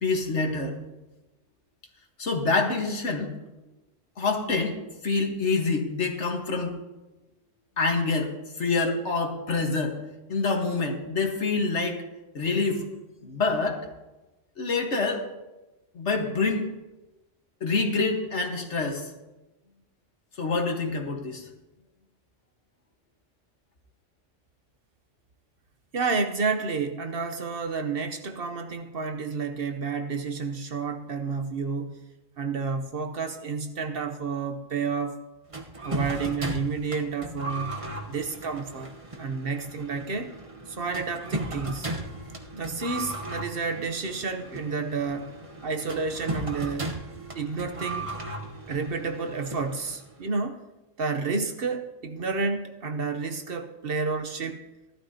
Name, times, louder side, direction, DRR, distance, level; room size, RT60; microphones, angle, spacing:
voice 1, 0.0-0.8 2.2-3.3 4.2-4.8 5.0-6.7 7.8-8.3 8.6-10.0 10.3-12.0 12.3-12.8 13.2-13.8 14.6-15.2 15.9-16.6 17.6-19.1 20.4-21.4, left 3 dB, 65° left, 3 dB, 1.7 m, -26 dB
voice 2, 25.9-32.0 32.4-35.2 35.8-37.8 38.1-40.3 40.7-41.9 42.5-45.3 45.6-46.9 47.3-48.2 48.7-50.6 51.0-54.6, right 4 dB, 55° right, 7 dB, 1.0 m, -30 dB
sound 1, 35.5-50.2, right 1 dB, 30° right, 1.1 m, -36 dB
16.5 x 12.5 x 2.8 m, 1.0 s
omnidirectional pair, 1.3 m